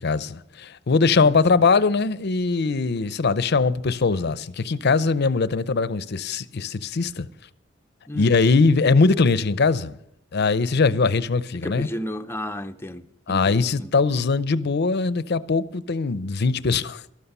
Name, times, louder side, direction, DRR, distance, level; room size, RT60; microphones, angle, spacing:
voice 1, 0.0-7.3 8.1-10.0 10.3-11.9 13.3-17.0, left 4 dB, 60° left, 0.6 m, -21 dB
voice 2, 1.2-1.6 8.1-8.4 11.6-13.9, left 1 dB, 10° left, 0.6 m, -34 dB
13.0 x 13.0 x 5.5 m
head